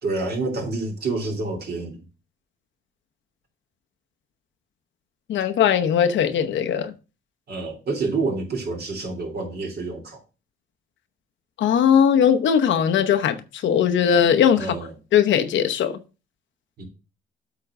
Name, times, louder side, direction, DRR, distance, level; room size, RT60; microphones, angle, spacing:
voice 1, 0.0-2.0 7.5-10.2 14.6-14.9 16.8-16.9, right 3 dB, 55° right, 2.7 m, -28 dB
voice 2, 5.3-6.9 11.6-14.7 15.1-16.0, left 8 dB, 70° left, 0.9 m, -19 dB
8.1 x 3.8 x 6.0 m
cardioid pair, 90°, 20 cm